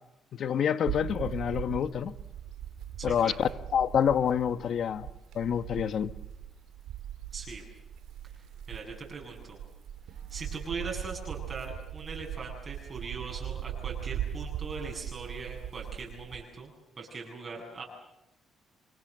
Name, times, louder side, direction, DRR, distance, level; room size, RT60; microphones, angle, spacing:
voice 1, 0.3-2.1 3.0-5.1 5.3-6.1, left 8 dB, 65° left, 1.3 m, -27 dB
sound 1, 0.8-16.4, right 10 dB, 90° right, 2.9 m, -40 dB
voice 2, 3.0-3.4 7.3-7.6 8.4-9.6 10.1-17.8, right 4 dB, 35° right, 7.8 m, -41 dB
29.5 x 25.5 x 6.9 m
cardioid pair, 90°, 0 cm